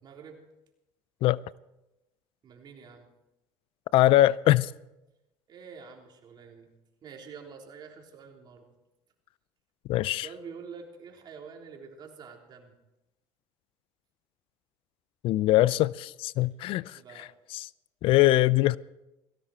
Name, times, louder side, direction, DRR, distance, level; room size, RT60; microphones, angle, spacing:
voice 1, 0.0-0.4 2.4-3.1 5.5-6.7 7.0-8.7 10.2-12.8 16.9-17.3, right 5 dB, 45° right, 3.7 m, -47 dB
voice 2, 3.9-4.7 9.9-10.3 15.2-17.3 17.5-17.7 18.0-18.8, left 15 dB, 65° left, 0.4 m, -22 dB
18.0 x 16.5 x 4.3 m
supercardioid pair, 95°, 10 cm